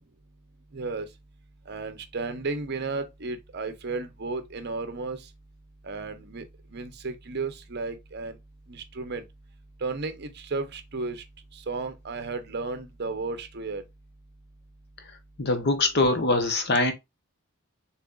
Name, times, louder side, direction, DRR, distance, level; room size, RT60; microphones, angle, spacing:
voice 1, 0.7-1.1 1.7-5.2 5.8-6.4 6.7-8.4 8.7-9.2 9.8-11.2 11.5-13.8, right 3 dB, 50° right, 0.8 m, -33 dB
voice 2, 15.4-16.9, left 2 dB, 50° left, 1.0 m, -23 dB
6.6 x 3.0 x 2.4 m
head